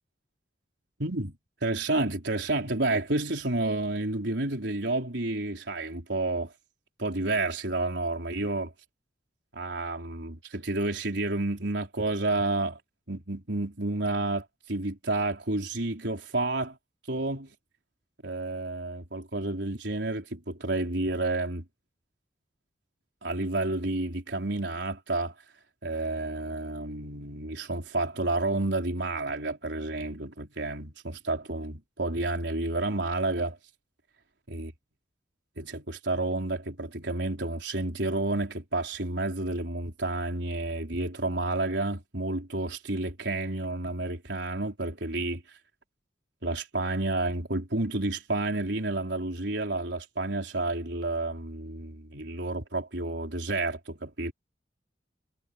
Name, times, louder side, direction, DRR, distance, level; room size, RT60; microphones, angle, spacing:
voice 1, 1.0-1.4 1.6-6.5 7.0-8.7 9.5-12.8 13.1-16.8 17.1-17.5 18.2-21.6 23.2-25.3 25.8-33.6 34.5-34.7 35.6-45.4 46.4-54.3, right 2 dB, 80° right, 4.2 m, -30 dB
head